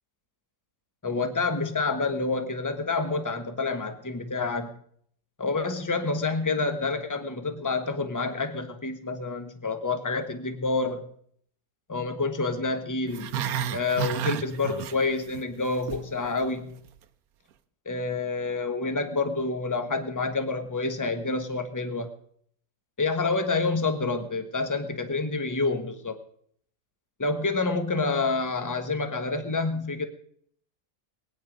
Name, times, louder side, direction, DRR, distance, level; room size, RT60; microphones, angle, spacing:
voice 1, 1.0-4.7 5.4-11.1 11.9-13.3 13.7-16.7 17.8-22.1 23.0-26.2 27.2-30.1, left 3 dB, 15° left, 7 dB, 1.1 m, -28 dB
Growling, 13.1-15.4 15.7-16.1 16.4-16.5, right 10 dB, 75° right, 1.2 m, -31 dB
20.0 x 9.5 x 5.1 m, 0.63 s
omnidirectional pair, 1.6 m